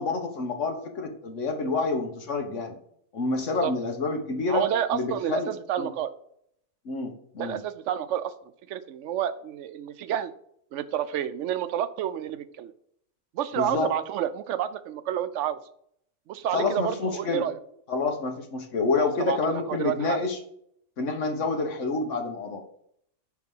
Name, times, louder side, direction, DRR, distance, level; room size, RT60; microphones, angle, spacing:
voice 1, 0.0-2.8 3.1-4.6 4.9-5.5 5.8-5.9 6.8-7.6 13.6-13.9 16.5-17.4 17.9-20.4 21.0-22.6, left 4 dB, 90° left, 4 dB, 1.5 m, -28 dB
voice 2, 4.5-6.1 7.4-8.3 8.7-10.3 10.7-12.7 13.3-15.6 16.3-17.6 19.0-20.2, right 10 dB, 85° right, 13 dB, 0.9 m, -29 dB
5.3 x 4.7 x 5.4 m, 0.69 s
omnidirectional pair, 1.2 m